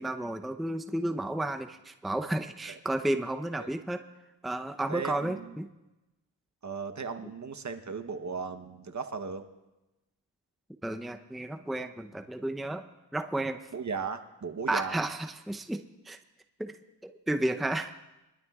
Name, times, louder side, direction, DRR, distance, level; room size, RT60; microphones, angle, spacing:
voice 1, 0.0-4.0 4.4-5.7 10.8-12.9 13.1-13.6 14.7-16.2 16.6-16.8 17.0-17.9, right 1 dB, ahead, 6 dB, 0.7 m, -32 dB
voice 2, 4.9-5.5 6.6-9.5 13.7-15.0, right 5 dB, 45° right, 7 dB, 1.0 m, -36 dB
23.0 x 12.5 x 2.4 m, 1.0 s
cardioid pair, 65°, 41 cm